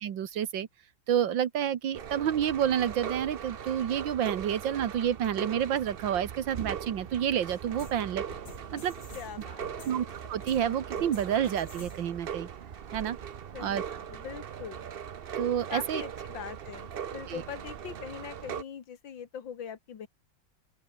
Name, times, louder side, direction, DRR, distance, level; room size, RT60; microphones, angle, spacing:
voice 1, 0.0-0.7 1.1-8.2 8.7-8.9 9.9-12.5 12.9-13.2 13.6-13.8 15.4-16.0 17.3-17.4, right 9 dB, 85° right, 2.0 m, -29 dB
sound 1, 1.9-18.6, right 8 dB, 55° right, 0.6 m, -40 dB
sound 2, 7.5-12.2, left 4 dB, 60° left, 3.7 m, -50 dB
voice 2, 9.1-10.0 13.5-14.9 15.7-20.1, left 8 dB, 90° left, 2.4 m, -42 dB
open air
omnidirectional pair, 2.0 m